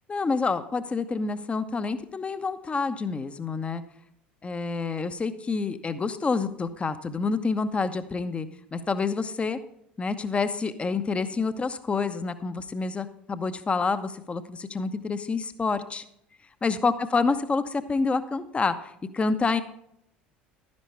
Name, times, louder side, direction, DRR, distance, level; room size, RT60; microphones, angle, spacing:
voice 1, 0.1-3.8 4.4-9.6 10.0-16.0 16.6-19.6, left 4 dB, 20° left, 10 dB, 1.0 m, -28 dB
12.0 x 10.5 x 3.4 m, 0.72 s
figure-of-eight pair, 65°, 5 cm